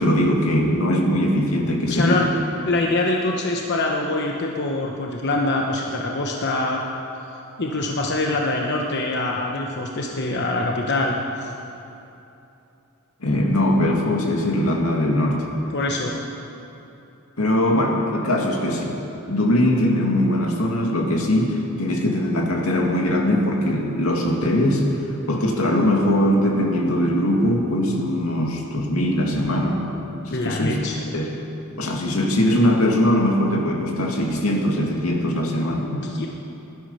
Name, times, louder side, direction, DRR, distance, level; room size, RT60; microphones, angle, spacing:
voice 1, 0.0-2.3 13.2-15.5 17.4-19.0 19.3-24.9 25.2-29.8 30.3-30.8 31.1-31.4 31.8-35.9, left 1 dB, 85° left, 0 dB, 2.2 m, -21 dB
voice 2, 1.9-2.3 2.6-6.9 7.2-7.3 7.6-11.5 15.7-16.2 30.3-31.0 35.8-36.3, left 2 dB, 55° left, 0 dB, 1.1 m, -24 dB
19.0 x 12.0 x 5.7 m, 2.9 s
head